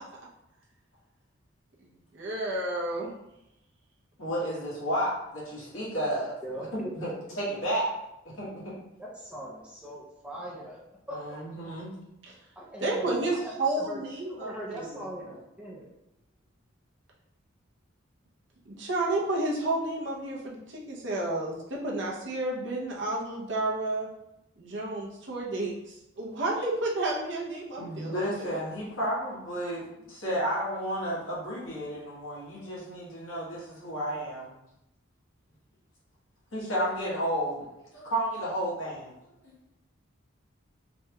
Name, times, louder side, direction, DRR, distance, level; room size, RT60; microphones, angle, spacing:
voice 1, 1.8-3.1 12.3-12.4 12.8-15.0 18.6-24.1 24.6-28.6, right 2 dB, 60° right, -4 dB, 0.7 m, -31 dB
voice 2, 4.2-6.3 6.7-7.1 7.4-7.9 8.2-8.7 11.1-11.9 27.8-29.8 30.1-34.5 36.5-37.7 37.9-39.1 39.4-39.5, equal, 80° left, -7 dB, 1.3 m, -32 dB
voice 3, 6.4-6.7 7.0-7.1 9.0-11.2 11.5-11.6 12.6-14.0 14.4-15.9, right 1 dB, 5° right, -4 dB, 0.3 m, -40 dB
3.3 x 2.2 x 2.8 m, 0.89 s
head